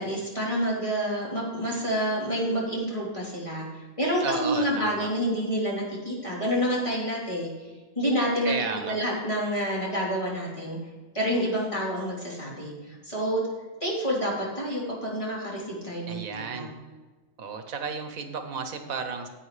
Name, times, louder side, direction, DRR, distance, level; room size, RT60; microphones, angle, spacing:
voice 1, 0.0-3.6 4.0-7.5 8.0-8.5 8.9-10.8 11.1-12.7 13.0-13.4 13.8-16.7, equal, 20° left, -6 dB, 3.7 m, -28 dB
voice 2, 4.2-5.1 8.4-9.0 16.1-16.7 17.4-19.3, right 5 dB, 85° right, 6 dB, 1.5 m, -33 dB
15.5 x 8.5 x 3.2 m, 1.3 s
omnidirectional pair, 1.4 m